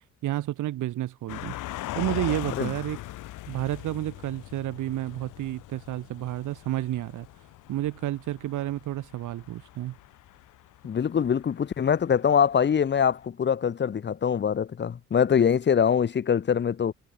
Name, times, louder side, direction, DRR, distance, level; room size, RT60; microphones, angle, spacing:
voice 1, 0.0-3.0 3.5-7.3 7.7-9.9, right 14 dB, 80° right, 1.6 m, -31 dB
sound 1, 1.3-13.0 13.2-13.3, left 16 dB, 85° left, 2.3 m, -40 dB
voice 2, 10.8-16.9, left 7 dB, 35° left, 1.0 m, -23 dB
cardioid pair, 90°, 30 cm